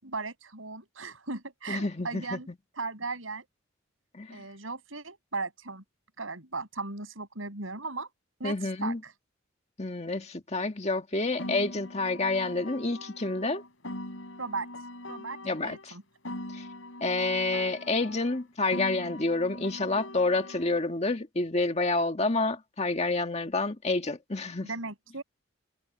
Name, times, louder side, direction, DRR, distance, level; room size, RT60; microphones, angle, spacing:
voice 1, 0.0-2.5 2.8-3.5 4.3-5.8 6.2-8.1 8.4-9.1 14.4-14.7 15.1-15.4 15.6-16.0 24.6-25.2, right 3 dB, 90° right, 6.8 m, -37 dB
voice 2, 1.7-2.4 4.1-4.4 8.4-9.0 9.8-13.6 15.4-15.8 16.5-16.6 17.0-24.7, left 2 dB, 35° left, 1.9 m, -29 dB
Piano, 11.4-15.9 16.2-20.9, left 1 dB, 75° left, 6.3 m, -41 dB
head